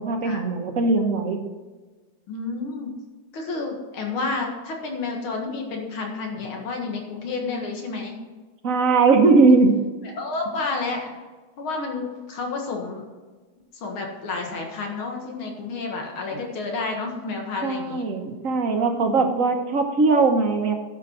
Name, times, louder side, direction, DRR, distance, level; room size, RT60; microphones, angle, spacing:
voice 1, 0.0-1.4 8.6-9.8 16.2-16.4 17.6-20.7, right 3 dB, 45° right, 4 dB, 1.3 m, -20 dB
voice 2, 2.3-3.0 3.3-8.2 10.1-11.1 11.6-13.0 13.7-18.0 18.9-19.3, left 3 dB, 90° left, 1 dB, 2.5 m, -30 dB
12.0 x 6.1 x 6.1 m, 1.3 s
omnidirectional pair, 2.2 m